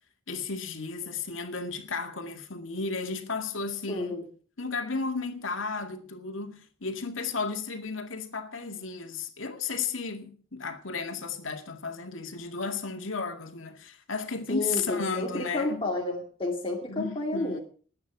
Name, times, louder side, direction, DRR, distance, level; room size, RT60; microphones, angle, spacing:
voice 1, 0.3-4.2 4.6-15.8 16.9-17.6, left 4 dB, 85° left, 2.1 m, -34 dB
voice 2, 3.9-4.3 14.5-17.6, left 2 dB, 30° left, 2.5 m, -31 dB
20.0 x 8.9 x 4.7 m
head